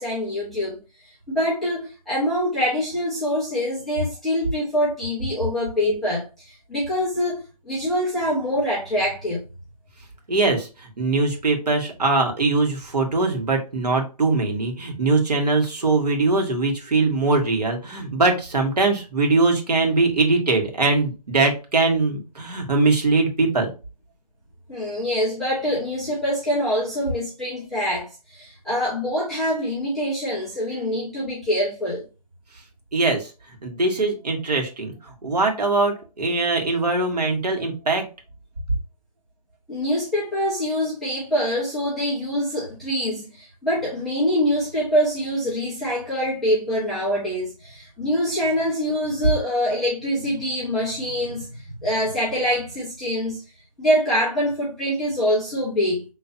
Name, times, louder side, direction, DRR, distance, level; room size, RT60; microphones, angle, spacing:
voice 1, 0.0-9.4 24.7-32.0 39.7-53.4 53.8-56.0, equal, ahead, 0.3 m, -25 dB
voice 2, 10.3-23.7 32.9-33.3 33.6-34.9 35.2-38.0, right 3 dB, 70° right, 1.8 m, -21 dB
5.9 x 3.1 x 2.8 m
figure-of-eight pair, 145°, 21 cm